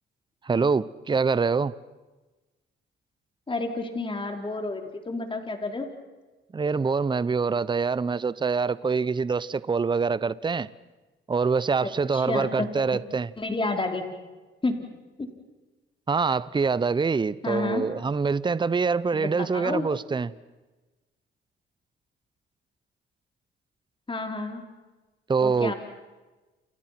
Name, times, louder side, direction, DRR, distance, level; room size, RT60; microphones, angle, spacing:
voice 1, 0.4-1.7 6.5-10.7 11.3-13.3 16.1-20.3 25.3-25.7, right 5 dB, 25° right, 18 dB, 0.8 m, -25 dB
voice 2, 3.5-5.9 11.8-12.7 13.4-14.0 14.6-14.8 15.2-15.3 17.4-17.8 19.1-19.9 24.1-24.6 25.4-25.7, left 3 dB, 25° left, 5 dB, 4.6 m, -30 dB
29.5 x 29.0 x 6.0 m, 1.2 s
cardioid pair, 90°, 20 cm